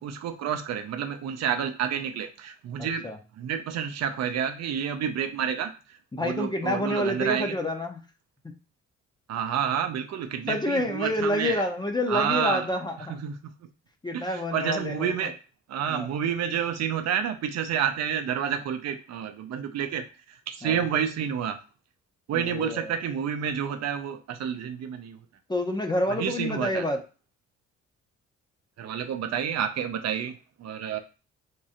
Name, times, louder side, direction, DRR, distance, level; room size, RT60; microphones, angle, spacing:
voice 1, 0.0-3.1 3.4-7.5 9.3-11.6 12.1-12.7 13.1-13.5 14.1-15.3 15.7-21.6 22.3-25.2 26.2-26.9 28.8-31.0, right 8 dB, 60° right, 8 dB, 0.5 m, -29 dB
voice 2, 2.8-3.2 6.1-8.0 10.5-13.2 14.0-15.3 15.9-16.1 20.6-20.8 22.3-22.9 25.5-27.0, left 1 dB, 15° left, 5 dB, 0.6 m, -28 dB
3.7 x 3.0 x 2.8 m, 0.34 s
cardioid pair, 90°, 30 cm